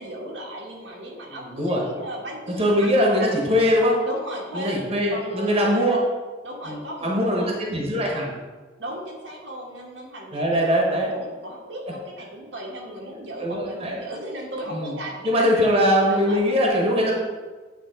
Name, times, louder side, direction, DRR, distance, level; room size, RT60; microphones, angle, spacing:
voice 1, 0.0-3.3 4.0-4.8 5.1-6.0 6.4-7.5 8.8-16.4 17.0-17.1, right 1 dB, 90° right, -2 dB, 1.4 m, -36 dB
voice 2, 1.3-1.8 2.6-4.0 4.5-6.0 6.6-8.3 10.3-11.1 13.4-13.9 14.7-14.9 15.2-17.1, equal, 35° right, -1 dB, 1.1 m, -21 dB
9.0 x 3.0 x 4.4 m, 1.3 s
head